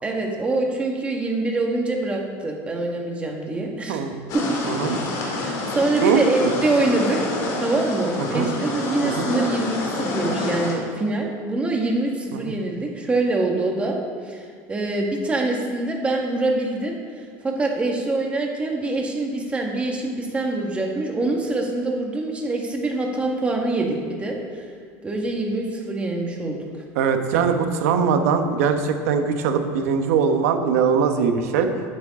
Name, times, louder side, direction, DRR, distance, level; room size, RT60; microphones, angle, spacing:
voice 1, 0.0-4.1 4.3-4.4 5.2-14.0 14.2-17.0 17.4-24.7 25.0-26.6, right 2 dB, 15° right, 0 dB, 1.6 m, -25 dB
sound 1, 4.3-10.8, left 2 dB, 50° left, 2.3 m, -28 dB
voice 2, 4.6-5.0 6.0-6.5 8.2-8.5 9.0-9.3 12.3-12.5 27.0-31.7, right 6 dB, 90° right, 6 dB, 1.1 m, -21 dB
11.0 x 8.8 x 3.7 m, 2.3 s
supercardioid pair, 140°, 8 cm